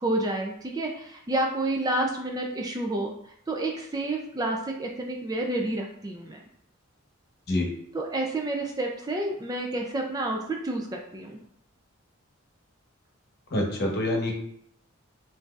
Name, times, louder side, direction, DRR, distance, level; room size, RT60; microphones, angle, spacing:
voice 1, 0.0-3.1 3.5-6.4 7.9-11.4, right 2 dB, 20° right, 1 dB, 0.4 m, -29 dB
voice 2, 13.5-14.3, left 1 dB, 50° left, -1 dB, 0.9 m, -26 dB
5.8 x 2.6 x 2.4 m, 0.70 s
head